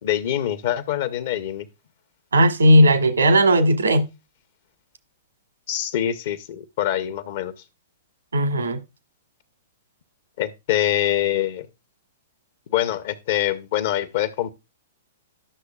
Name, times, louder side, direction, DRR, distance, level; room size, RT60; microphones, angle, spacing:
voice 1, 0.0-1.7 5.7-7.5 10.4-11.7 12.7-14.5, left 12 dB, 55° left, 0.9 m, -24 dB
voice 2, 2.3-4.0 8.3-8.8, equal, 90° right, 1.6 m, -16 dB
11.0 x 6.5 x 2.3 m
hypercardioid pair, 120°, 0 cm